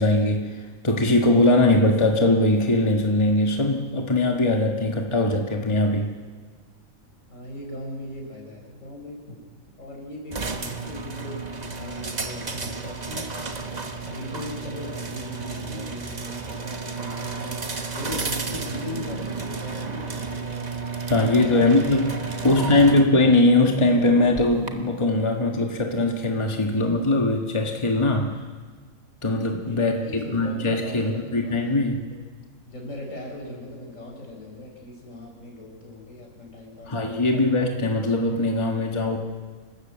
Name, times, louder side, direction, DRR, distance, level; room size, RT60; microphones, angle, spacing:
voice 1, 0.0-6.1 21.1-28.3 29.2-32.0 36.9-39.2, left 2 dB, 20° left, 2 dB, 1.6 m, -21 dB
voice 2, 7.3-9.4 9.8-13.3 14.0-20.8 21.2-21.6 22.3-23.0 29.6-31.8 32.1-32.2 32.7-37.5, left 1 dB, 70° left, 0 dB, 5.5 m, -39 dB
sound 1, 10.3-24.7, right 4 dB, 30° right, 1.3 m, -32 dB
28.5 x 13.0 x 7.7 m, 1.5 s
omnidirectional pair, 1.4 m